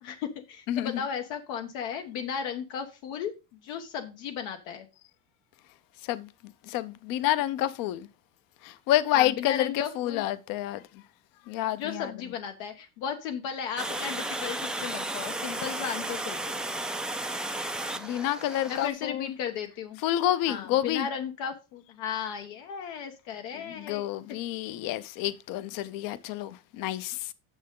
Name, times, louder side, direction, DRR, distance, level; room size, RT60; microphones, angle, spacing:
voice 1, 0.0-3.3 3.6-4.9 9.1-10.2 11.7-16.6 18.7-20.0 20.5-24.0, left 7 dB, 80° left, 1.2 m, -35 dB
voice 2, 0.7-1.0 6.0-6.3 6.7-8.1 8.6-10.8 11.5-12.1 17.9-19.3 20.0-21.1 23.5-27.3, left 13 dB, 55° left, 0.7 m, -29 dB
Water, 13.8-18.9, right 1 dB, ahead, 0.3 m, -34 dB
9.2 x 6.5 x 3.7 m
supercardioid pair, 125°, 41 cm